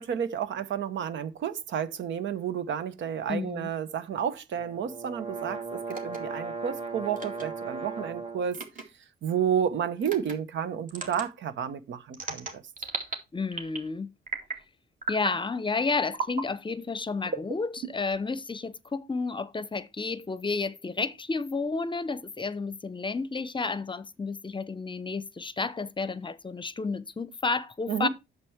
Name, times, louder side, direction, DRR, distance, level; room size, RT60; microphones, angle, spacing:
voice 1, 0.0-8.6 9.2-12.6 27.9-28.1, right 8 dB, 70° right, 1.0 m, -31 dB
voice 2, 3.3-3.7 13.3-14.1 15.1-28.1, left 4 dB, 25° left, 0.7 m, -31 dB
sound 1, 4.6-8.5, right 4 dB, 25° right, 2.3 m, -37 dB
sound 2, 5.9-6.2 7.1-7.4 8.5-8.8 10.0-10.3 10.9-11.3 12.1-13.2 13.5-13.9 14.3-14.6 15.0-15.4 16.1-16.5 17.3-18.2, right 3 dB, 40° right, 2.4 m, -35 dB
8.3 x 6.9 x 4.5 m
cardioid pair, 90°, 20 cm